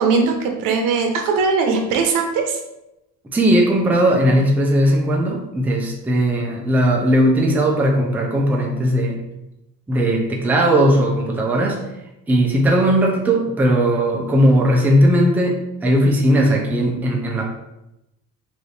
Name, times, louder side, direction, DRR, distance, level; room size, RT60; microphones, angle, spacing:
voice 1, 0.0-2.6, right 4 dB, 90° right, 3 dB, 0.8 m, -19 dB
voice 2, 3.2-9.2 9.9-11.9 12.3-17.5, equal, 5° right, -1 dB, 0.4 m, -17 dB
4.1 x 2.6 x 3.2 m, 0.90 s
cardioid pair, 165°, 32 cm